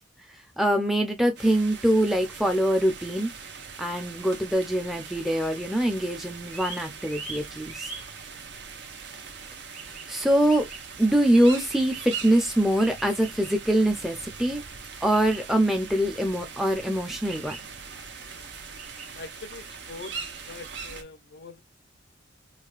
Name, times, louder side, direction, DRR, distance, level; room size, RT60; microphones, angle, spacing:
voice 1, 0.6-3.3 3.8-7.9 10.1-10.7 11.0-14.6 15.0-17.6, right 1 dB, ahead, 0.6 m, -24 dB
sound 1, 1.4-21.0, right 5 dB, 65° right, 0.8 m, -41 dB
sound 2, 5.0-19.5, right 4 dB, 35° right, 1.3 m, -46 dB
voice 2, 19.1-20.1 20.5-21.6, left 3 dB, 60° left, 0.6 m, -42 dB
4.8 x 2.2 x 2.4 m
head